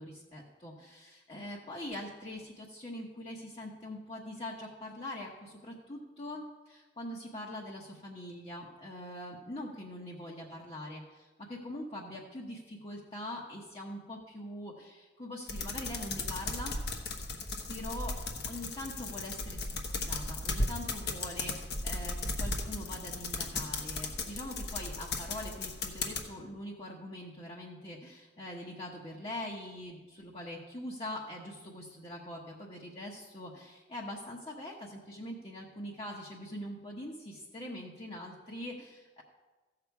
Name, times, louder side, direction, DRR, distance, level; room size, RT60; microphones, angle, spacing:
voice 1, 0.0-16.8 17.7-18.1 18.5-39.2, left 1 dB, 35° left, -4 dB, 1.1 m, -43 dB
sound 1, 15.5-26.2, left 2 dB, 65° left, 1.1 m, -36 dB
15.0 x 6.8 x 4.7 m, 1.3 s
head